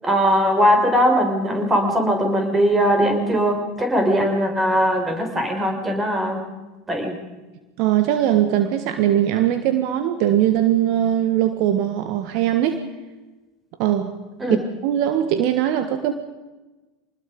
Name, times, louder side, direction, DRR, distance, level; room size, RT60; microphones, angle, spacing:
voice 1, 0.0-6.4 6.9-7.1 14.4-14.6, equal, 20° right, 4 dB, 6.0 m, -20 dB
voice 2, 7.8-12.8 13.8-14.1 14.5-16.1, right 11 dB, 60° right, 9 dB, 1.5 m, -20 dB
26.0 x 20.0 x 5.4 m, 1.2 s
hypercardioid pair, 85°, 0 cm